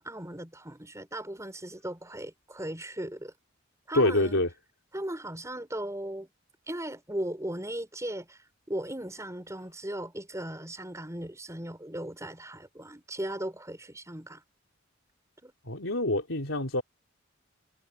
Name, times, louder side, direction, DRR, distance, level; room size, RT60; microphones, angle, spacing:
voice 1, 0.0-3.3 3.9-4.4 4.9-6.3 6.7-14.4 15.4-15.5, right 1 dB, 15° right, 5.4 m, -37 dB
voice 2, 3.9-4.5 15.7-16.8, left 1 dB, 80° left, 3.7 m, -26 dB
head